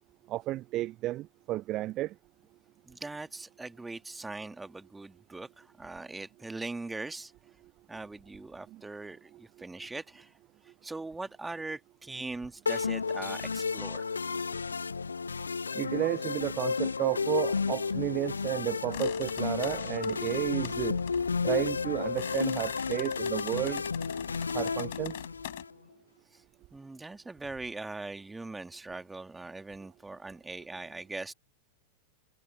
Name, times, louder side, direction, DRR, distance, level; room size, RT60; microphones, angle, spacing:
voice 1, 0.3-2.1 8.7-8.8 15.7-21.0 21.4-23.8 24.5-25.1, right 15 dB, 35° right, 0.5 m, -32 dB
voice 2, 2.8-7.3 7.9-10.4 10.6-14.0 26.3-26.4 26.7-31.3, right 3 dB, 10° right, 2.1 m, -41 dB
sound 1, 12.7-25.7, left 5 dB, 75° left, 0.3 m, -32 dB
sound 2, 18.9-25.6, left 15 dB, 55° left, 5.6 m, -44 dB
figure-of-eight pair, 90°, 0 cm